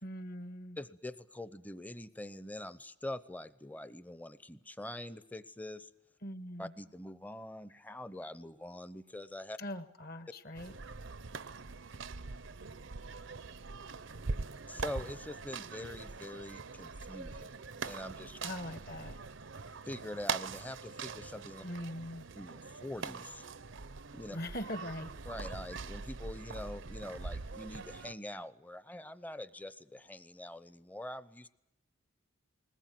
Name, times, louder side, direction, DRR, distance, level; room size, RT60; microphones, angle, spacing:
voice 1, 0.0-0.8 6.2-6.7 9.6-10.7 18.4-19.2 21.6-22.2 24.3-25.1, left 1 dB, 50° left, 10 dB, 1.7 m, -41 dB
voice 2, 0.8-5.9 6.6-9.6 14.7-18.4 19.8-21.6 22.4-23.4 24.1-24.4 25.3-31.5, left 1 dB, 10° left, 14 dB, 0.8 m, -44 dB
sound 1, 10.5-28.1, right 4 dB, 65° right, 0.8 m, -43 dB
21.0 x 20.0 x 9.3 m, 0.90 s
head